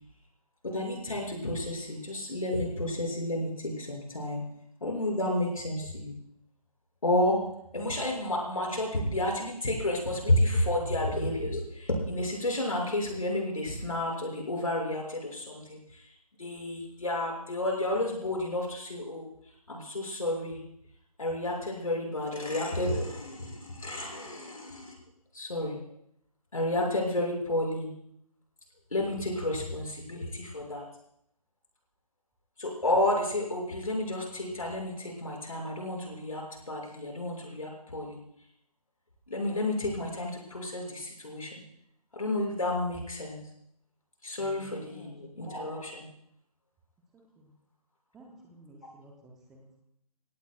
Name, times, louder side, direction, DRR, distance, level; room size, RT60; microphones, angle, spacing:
voice 1, 0.6-4.4 4.8-6.1 7.0-7.4 7.7-16.1 16.4-19.3 19.7-20.6 21.2-25.0 25.3-25.8 26.5-27.9 28.9-30.8 32.6-38.2 39.3-41.5 42.1-43.4 44.2-46.1, left 1 dB, 60° left, 0 dB, 6.0 m, -31 dB
voice 2, 44.4-45.5 47.1-47.5 48.1-49.8, right 1 dB, ahead, 0 dB, 0.5 m, -53 dB
26.5 x 17.5 x 2.3 m, 0.74 s
figure-of-eight pair, 150°, 20 cm